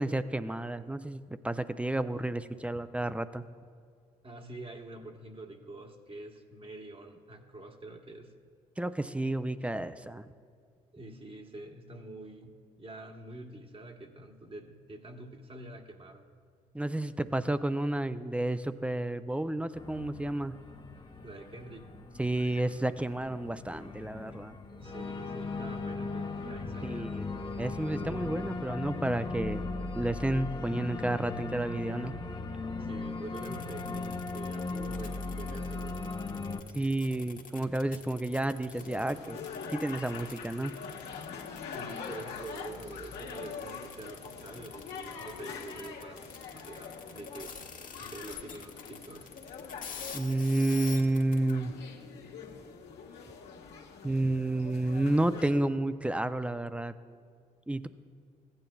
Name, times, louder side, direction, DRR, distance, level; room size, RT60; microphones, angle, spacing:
voice 1, 0.0-3.5 8.8-10.3 16.7-20.6 22.2-24.6 26.8-29.6 30.0-32.2 36.7-39.4 39.7-40.8 50.1-51.8 54.0-56.9 57.7-57.9, right 1 dB, 5° right, 13 dB, 0.5 m, -31 dB
voice 2, 4.2-8.3 10.9-16.2 21.2-22.0 24.6-27.7 32.8-36.3 41.7-47.5 48.0-49.3, right 2 dB, 30° right, 4 dB, 1.3 m, -46 dB
Organ, 19.8-36.6, left 3 dB, 25° left, 0.9 m, -38 dB
sound 1, 33.3-51.5, left 6 dB, 45° left, 1.3 m, -46 dB
sound 2, 38.7-55.6, left 6 dB, 65° left, 1.5 m, -44 dB
16.0 x 8.9 x 2.3 m, 2.1 s
hypercardioid pair, 50°, 19 cm